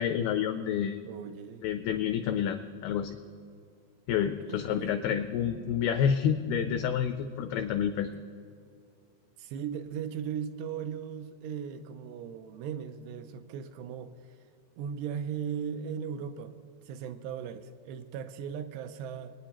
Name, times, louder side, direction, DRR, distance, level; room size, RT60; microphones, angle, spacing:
voice 1, 0.0-1.0 1.6-3.2 4.1-8.1, left 8 dB, 85° left, 8 dB, 2.2 m, -29 dB
voice 2, 1.1-1.7 4.5-5.0 9.4-14.4 14.8-16.6 16.9-19.3, right 7 dB, 85° right, 9 dB, 2.6 m, -38 dB
24.0 x 9.3 x 2.9 m, 2.4 s
omnidirectional pair, 5.0 m